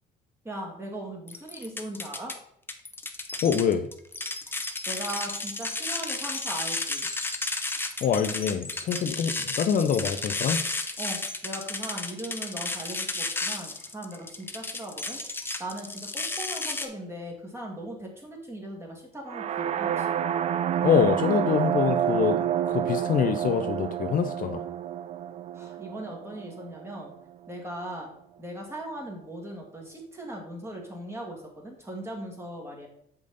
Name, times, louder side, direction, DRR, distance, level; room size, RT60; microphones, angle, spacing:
voice 1, 0.4-2.4 4.9-7.1 11.0-15.2 15.6-20.1 25.5-27.1 27.5-28.1 28.4-32.9, right 1 dB, 15° right, 0 dB, 2.1 m, -39 dB
sound 1, 1.3-2.3 2.7-16.9, left 3 dB, 15° left, 0.7 m, -33 dB
voice 2, 3.4-3.9 8.0-10.6 20.8-22.4 22.7-24.6, left 7 dB, 55° left, 8 dB, 0.6 m, -25 dB
sound 2, 19.3-27.2, right 10 dB, 40° right, 0.4 m, -29 dB
7.1 x 5.1 x 4.0 m, 0.71 s
cardioid pair, 110°, 17 cm